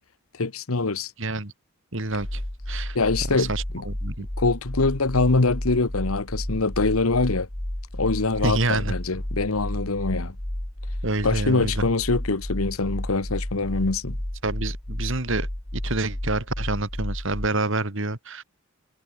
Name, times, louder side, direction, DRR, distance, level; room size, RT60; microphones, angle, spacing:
voice 1, 0.4-1.1 2.9-3.9 4.4-7.5 7.9-10.3 11.2-14.2, left 3 dB, 85° left, 1.3 m, -24 dB
voice 2, 1.2-1.5 1.9-2.4 2.7-3.0 3.3-4.3 8.4-8.9 11.0-11.8 14.4-18.4, right 2 dB, 65° right, 2.6 m, -28 dB
sound 1, 2.2-17.5, left 1 dB, 25° left, 1.5 m, -32 dB
head